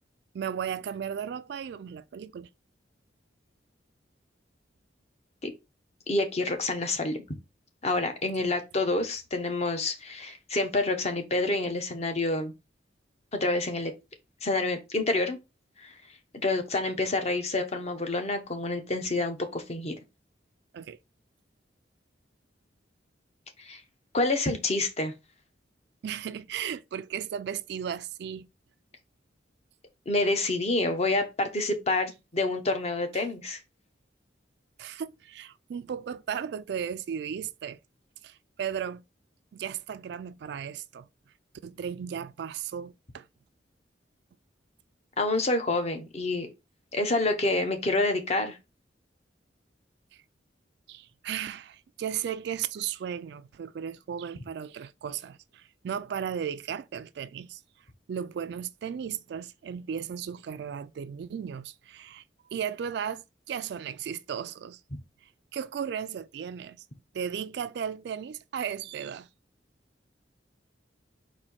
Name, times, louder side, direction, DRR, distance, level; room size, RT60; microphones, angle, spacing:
voice 1, 0.3-2.5 20.7-21.0 26.0-28.5 34.8-37.8 38.2-39.0 39.5-41.1 41.6-43.3 50.1-50.2 50.9-57.6 58.1-62.2 62.5-64.8 65.5-66.8 67.1-69.3, right 8 dB, 65° right, 0.3 m, -35 dB
voice 2, 6.1-7.2 7.8-12.5 13.3-13.9 14.4-15.4 15.8-15.9 16.3-19.9 23.6-23.8 24.1-25.1 30.1-33.6 45.2-46.5 46.9-48.6, left 2 dB, 35° left, 0.8 m, -28 dB
4.3 x 2.6 x 4.2 m
head